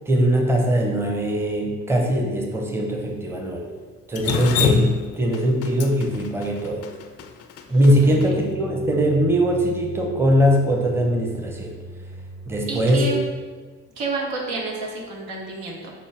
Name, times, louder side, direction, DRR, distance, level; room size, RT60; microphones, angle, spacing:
voice 1, 0.1-3.6 4.1-6.8 7.7-11.7 12.5-13.1, equal, 5° right, 1 dB, 0.6 m, -21 dB
Drip, 4.2-8.3, left 6 dB, 40° left, 0.4 m, -25 dB
sound 1, 7.8-13.0, right 1 dB, 35° right, 1.0 m, -40 dB
voice 2, 8.0-8.4 12.7-13.2 14.0-15.9, right 3 dB, 75° right, -1 dB, 0.7 m, -30 dB
5.2 x 2.2 x 3.3 m, 1.4 s
figure-of-eight pair, 40°, 39 cm